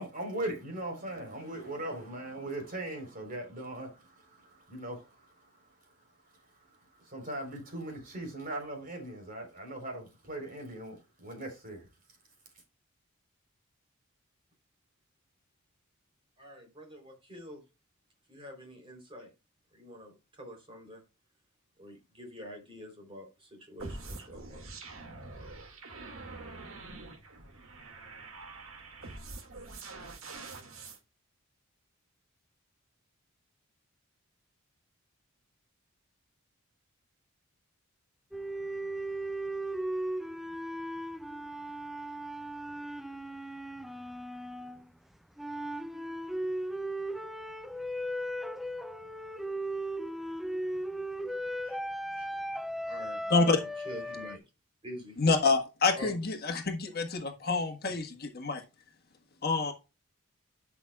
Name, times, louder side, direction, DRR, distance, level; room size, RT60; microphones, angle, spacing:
voice 1, 0.0-11.9, right 1 dB, 40° right, 3.9 m, -40 dB
voice 2, 16.4-17.6 18.3-19.3 19.7-21.0 21.8-24.6 51.6-51.8 52.1-52.5 52.9-54.4 54.8-55.2 55.9-56.2, equal, 25° right, 3.5 m, -46 dB
sound 1, 23.8-31.0, right 3 dB, 75° right, 2.1 m, -45 dB
sound 2, 38.3-44.9 45.4-54.4, right 1 dB, ahead, 0.4 m, -37 dB
voice 3, 55.2-58.6 59.4-59.7, left 3 dB, 45° left, 1.4 m, -27 dB
12.5 x 6.1 x 2.4 m
head